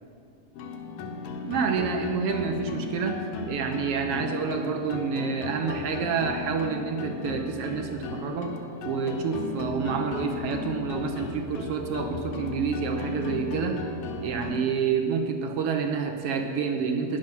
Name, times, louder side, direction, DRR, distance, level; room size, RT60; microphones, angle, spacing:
sound 1, 0.5-14.6, left 4 dB, 80° left, 2.6 m, -35 dB
voice 1, 1.4-8.5 8.8-13.8 14.2-17.2, right 6 dB, 75° right, 4 dB, 1.4 m, -28 dB
15.5 x 10.5 x 6.0 m, 2.4 s
omnidirectional pair, 3.9 m